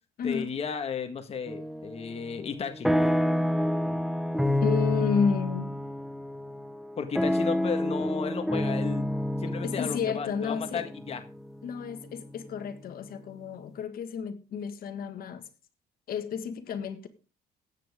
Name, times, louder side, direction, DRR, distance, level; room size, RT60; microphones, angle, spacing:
voice 1, 0.2-2.9 7.0-9.1 9.4-11.2, left 6 dB, 35° left, 1.6 m, -34 dB
sound 1, 1.5-2.0 2.4-12.4, left 1 dB, ahead, 0.9 m, -29 dB
voice 2, 4.6-5.7 9.6-10.8 11.6-15.4 16.1-17.1, left 6 dB, 60° left, 1.7 m, -31 dB
15.0 x 9.2 x 3.6 m
cardioid pair, 110°, 17 cm